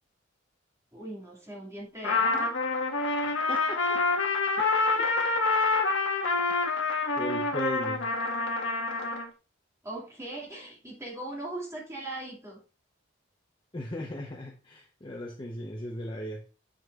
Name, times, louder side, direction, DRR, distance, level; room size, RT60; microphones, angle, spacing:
voice 1, 0.9-2.5 9.8-12.6, right 2 dB, 15° right, -3 dB, 2.0 m, -39 dB
Trumpet, 2.0-9.3, left 3 dB, 75° left, 1.4 m, -27 dB
voice 2, 3.5-4.0 4.5-4.6 7.2-8.1 13.7-16.4, left 1 dB, 25° left, 0 dB, 0.8 m, -37 dB
7.2 x 6.3 x 2.4 m, 0.34 s
head